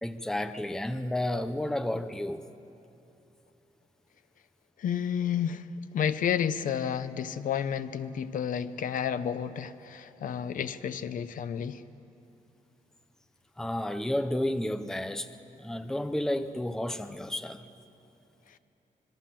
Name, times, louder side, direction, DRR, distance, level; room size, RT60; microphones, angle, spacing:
voice 1, 0.0-2.5 13.6-15.3 15.6-17.6, left 1 dB, 5° left, 0.6 m, -31 dB
voice 2, 4.8-5.7 5.9-11.8, left 8 dB, 70° left, 0.8 m, -31 dB
26.0 x 22.5 x 7.6 m
wide cardioid pair, 165°, 14 cm